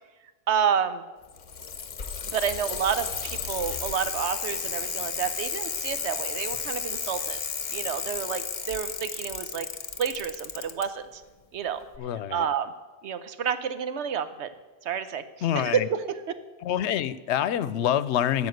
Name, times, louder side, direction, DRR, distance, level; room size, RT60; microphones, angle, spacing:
voice 1, 0.5-1.0 2.3-7.4 7.7-9.7 10.0-11.2 11.5-11.8 12.3-12.7 13.0-14.5 14.8-15.2 15.5-16.4, right 7 dB, 90° right, 11 dB, 1.1 m, -29 dB
Bicycle, 1.2-10.8 11.9-12.0, left 6 dB, 45° left, 0.9 m, -33 dB
voice 2, 12.0-12.5 15.4-15.9 16.6-18.5, left 10 dB, 85° left, 16 dB, 0.9 m, -26 dB
14.5 x 5.2 x 7.8 m, 1.2 s
omnidirectional pair, 1.1 m